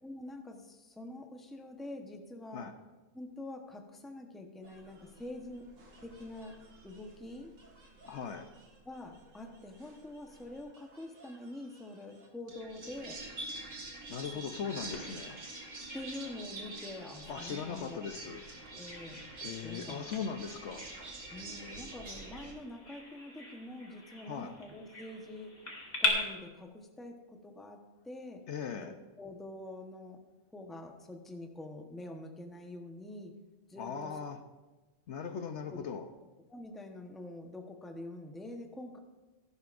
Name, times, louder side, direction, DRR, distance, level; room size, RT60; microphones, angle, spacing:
voice 1, 0.0-2.7 3.1-5.7 6.0-6.6 6.8-7.5 8.8-13.2 14.3-14.4 15.9-18.0 18.8-19.2 19.6-20.1 21.3-25.5 26.0-27.8 28.0-28.4 28.8-30.2 30.5-33.3 33.7-34.1 35.7-35.8 36.5-39.0, left 1 dB, ahead, 3 dB, 0.9 m, -45 dB
sound 1, 4.6-22.5, right 2 dB, 70° right, 2.0 m, -48 dB
voice 2, 8.0-8.5 14.1-15.4 17.3-18.4 19.4-20.9 24.2-24.6 28.5-28.9 33.7-34.4 35.1-36.1, left 6 dB, 65° left, 8 dB, 0.9 m, -39 dB
Bird vocalization bird call bird song, 14.9-26.1, left 2 dB, 30° left, 2.1 m, -42 dB
16.5 x 11.0 x 2.6 m, 1.2 s
omnidirectional pair, 1.4 m